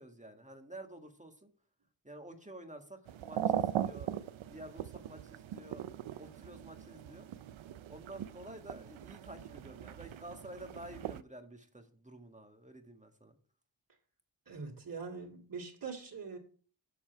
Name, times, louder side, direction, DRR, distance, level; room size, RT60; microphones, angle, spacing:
voice 1, 0.0-1.5 2.0-5.8 6.2-7.3 7.9-13.4, right 1 dB, 15° right, 5 dB, 1.7 m, -50 dB
sound 1, 3.1-11.2, right 10 dB, 80° right, 0.6 m, -39 dB
voice 2, 14.5-16.4, right 5 dB, 45° right, -3 dB, 2.6 m, -43 dB
7.3 x 7.1 x 4.6 m, 0.43 s
cardioid pair, 50°, 46 cm